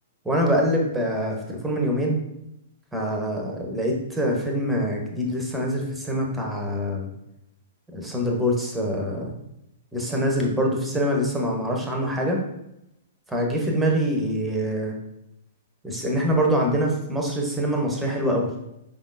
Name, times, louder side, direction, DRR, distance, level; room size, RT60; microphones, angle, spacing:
voice 1, 0.2-2.2 2.9-7.1 7.9-9.3 9.9-12.4 13.3-14.9 15.8-18.5, equal, 5° right, 0 dB, 0.9 m, -24 dB
5.2 x 3.7 x 2.6 m, 0.84 s
figure-of-eight pair, 110°, 0 cm